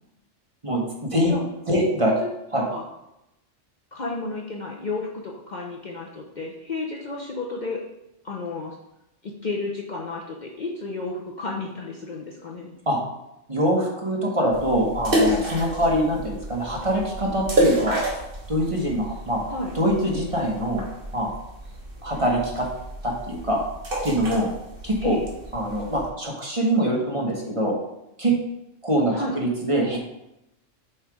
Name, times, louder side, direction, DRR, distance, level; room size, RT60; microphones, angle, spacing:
voice 1, 1.1-1.4 1.7-1.8 2.5-2.8 3.9-7.8 8.2-8.8 9.2-12.7 19.4-19.7 25.0-25.3 29.1-29.4, left 3 dB, 45° left, -2 dB, 0.8 m, -32 dB
voice 2, 1.7-2.1 2.5-2.6 12.9-13.0 13.5-18.0 18.5-19.4 19.7-20.9 21.1-21.3 22.0-22.7 23.0-23.6 24.0-24.5 24.8-25.2 25.5-27.8 28.2-28.4 28.8-30.0, equal, 30° right, -2 dB, 1.2 m, -24 dB
sound 1, 14.5-26.1, right 1 dB, 50° right, 1.4 m, -29 dB
7.4 x 3.3 x 4.8 m, 0.87 s
omnidirectional pair, 1.2 m